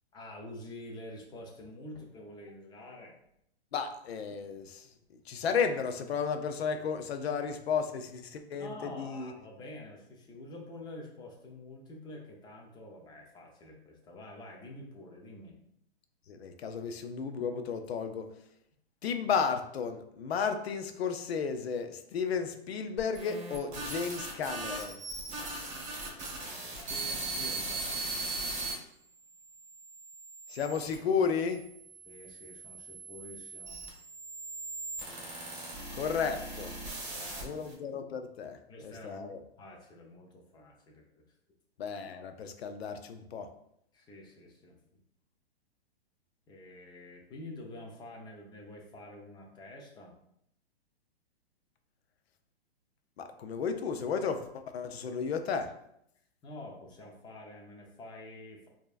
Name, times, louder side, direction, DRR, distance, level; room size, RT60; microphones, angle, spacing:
voice 1, 0.1-3.2 8.6-15.6 26.9-28.3 32.0-33.8 37.0-37.7 38.7-39.3 39.6-41.2 43.9-44.8 46.5-50.2 56.4-58.7, left 1 dB, 15° left, 0 dB, 0.6 m, -47 dB
voice 2, 3.7-4.9 5.3-9.3 16.3-18.3 19.0-25.0 30.5-31.6 35.9-36.7 37.4-38.6 38.8-39.4 41.8-43.5 53.2-55.7, left 6 dB, 75° left, 7 dB, 0.6 m, -33 dB
sound 1, 23.0-28.7 29.4-30.9 31.7-37.7, right 3 dB, 20° right, 1.3 m, -39 dB
4.5 x 2.8 x 2.4 m, 0.74 s
hypercardioid pair, 130°, 32 cm